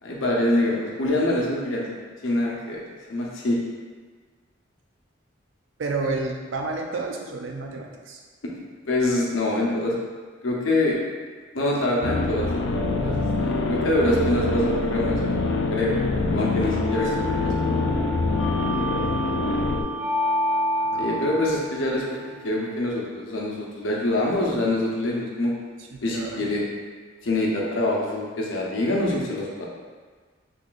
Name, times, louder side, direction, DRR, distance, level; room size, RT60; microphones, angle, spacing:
voice 1, 0.0-2.8 3.1-3.6 8.9-9.9 10.4-11.0 11.5-12.5 13.0-15.4 15.7-16.0 16.3-17.1 17.4-17.5 20.9-22.2 22.4-25.5 26.0-26.6 27.2-29.7, left 1 dB, 85° left, -3 dB, 0.7 m, -25 dB
voice 2, 5.8-8.2 17.0-17.1 19.1-19.4 20.8-21.5 25.8-26.5, right 3 dB, 80° right, 2 dB, 0.5 m, -31 dB
sound 1, 12.0-19.8, left 3 dB, 60° left, 0.3 m, -25 dB
sound 2, 12.7-22.8, equal, 30° right, 0.9 m, -30 dB
3.8 x 3.3 x 2.4 m, 1.5 s
head